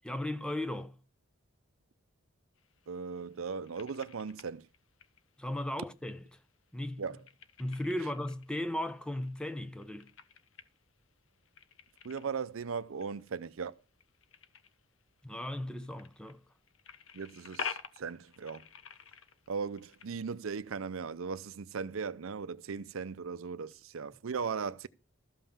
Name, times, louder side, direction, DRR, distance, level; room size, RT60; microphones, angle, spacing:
voice 1, 0.0-0.9 5.4-6.2 6.7-7.0 7.6-10.1 15.2-16.4, left 1 dB, 5° left, 0.8 m, -36 dB
sound 1, 2.6-20.1, left 6 dB, 70° left, 1.0 m, -49 dB
voice 2, 2.9-4.7 7.0-7.2 12.0-13.8 17.1-18.6 19.5-24.9, right 5 dB, 75° right, 0.5 m, -38 dB
13.5 x 5.6 x 7.2 m
head